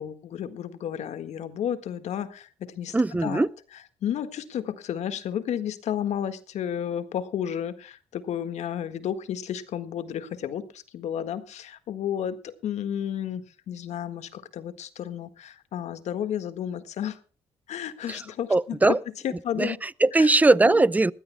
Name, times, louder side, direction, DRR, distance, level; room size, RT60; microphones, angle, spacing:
voice 1, 0.0-3.0 3.2-3.5 4.0-17.2 17.7-19.0 19.2-19.8 20.2-20.3 20.6-20.9, left 9 dB, 75° left, 1.6 m, -32 dB
voice 2, 2.9-3.5 18.1-18.2 18.5-19.0 19.6-21.1, right 2 dB, 15° right, 0.5 m, -20 dB
21.5 x 15.5 x 2.2 m
cardioid pair, 75°, 12 cm